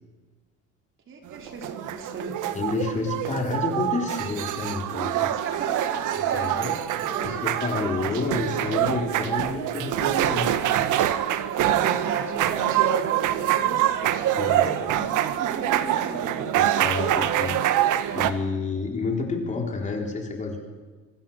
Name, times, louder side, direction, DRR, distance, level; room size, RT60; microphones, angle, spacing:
voice 1, 1.1-2.4 5.3-6.8 7.0-7.4 11.5-16.7, right 4 dB, 40° right, 3 dB, 4.2 m, -35 dB
sound 1, 1.3-18.3, right 12 dB, 85° right, 1.7 m, -25 dB
voice 2, 2.5-5.3 6.3-6.7 7.2-10.8 14.3-14.7 16.6-17.6 18.1-20.7, left 4 dB, 25° left, 2 dB, 4.0 m, -29 dB
26.0 x 25.0 x 7.4 m, 1.3 s
cardioid pair, 180°, 30 cm